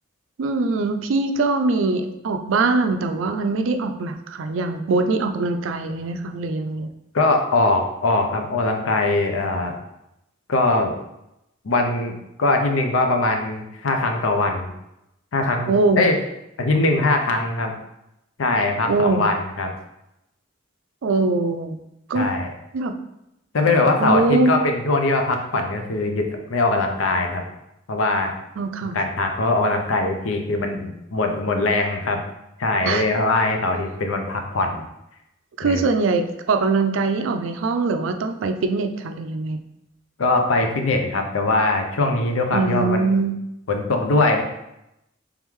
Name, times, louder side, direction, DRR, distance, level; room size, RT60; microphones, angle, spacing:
voice 1, 0.4-6.9 15.7-16.0 18.9-19.3 21.0-21.8 22.1-22.3 22.7-22.9 24.0-24.6 28.6-29.0 32.8-33.0 35.6-39.6 42.5-43.4, right 3 dB, 70° right, 7 dB, 0.4 m, -22 dB
voice 2, 7.1-9.8 10.5-10.9 11.6-14.7 15.3-16.2 16.6-17.7 18.4-19.7 22.1-22.5 23.5-27.4 27.9-28.3 28.9-32.2 32.6-34.8 35.6-35.8 40.2-43.1 43.7-44.4, left 2 dB, 80° left, 4 dB, 0.6 m, -21 dB
3.5 x 3.1 x 3.5 m, 0.86 s
head